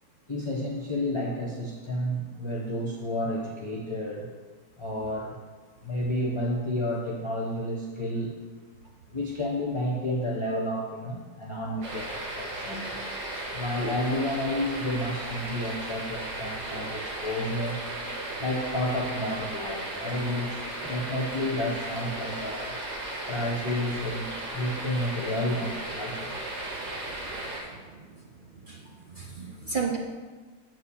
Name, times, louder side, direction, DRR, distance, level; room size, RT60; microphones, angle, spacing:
voice 1, 0.3-4.3 4.8-5.4 5.8-8.3 9.1-13.0 13.5-17.8 18.4-22.8 23.3-26.4, left 1 dB, 20° left, -3 dB, 0.9 m, -31 dB
sound 1, 11.8-27.6, right 1 dB, 85° right, 2.2 m, -36 dB
voice 2, 27.7-28.0 28.6-30.0, right 5 dB, 50° right, 1 dB, 0.6 m, -34 dB
7.9 x 4.8 x 7.1 m, 1.4 s
omnidirectional pair, 1.7 m